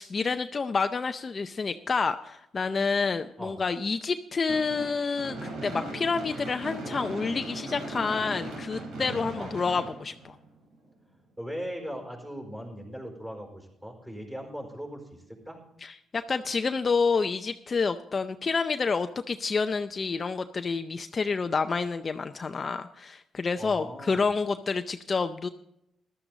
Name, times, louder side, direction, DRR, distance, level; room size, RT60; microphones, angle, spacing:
voice 1, 0.0-10.4 15.8-25.5, left 4 dB, 35° left, 8 dB, 0.5 m, -29 dB
Gunshot gunfire / Fireworks, 4.5-10.7, right 2 dB, 80° right, 3.9 m, -38 dB
voice 2, 11.4-15.6 23.6-24.2, equal, 10° right, 1 dB, 4.7 m, -39 dB
14.5 x 12.0 x 3.9 m, 0.81 s
cardioid pair, 90°, 0 cm